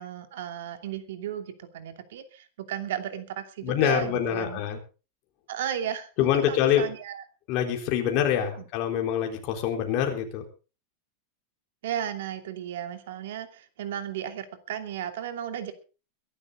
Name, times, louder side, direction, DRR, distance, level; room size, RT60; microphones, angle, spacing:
voice 1, 0.0-4.8 5.5-7.2 8.4-8.6 11.8-15.7, right 10 dB, 75° right, 8 dB, 2.7 m, -35 dB
voice 2, 3.6-4.8 6.2-6.9 7.5-10.4, left 9 dB, 35° left, 3 dB, 3.9 m, -25 dB
22.5 x 11.5 x 3.8 m, 0.34 s
supercardioid pair, 170°, 0 cm